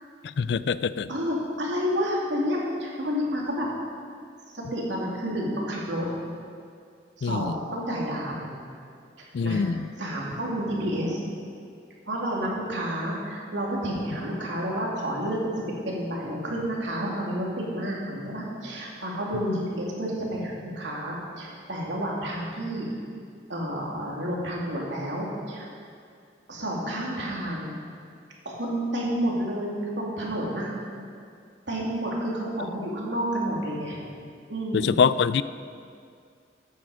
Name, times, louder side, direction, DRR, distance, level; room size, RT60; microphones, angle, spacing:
voice 1, 0.2-1.1 7.2-7.6 9.3-9.9 19.5-19.6 34.7-35.4, left 6 dB, 70° left, 16 dB, 0.4 m, -24 dB
voice 2, 1.1-3.7 4.5-6.1 7.2-8.6 9.2-9.6 10.0-11.2 12.1-22.9 23.5-25.7 26.5-27.8 28.4-30.7 31.7-34.0 34.5-34.9, equal, 85° right, -3 dB, 2.7 m, -30 dB
14.0 x 9.3 x 4.9 m, 2.3 s
head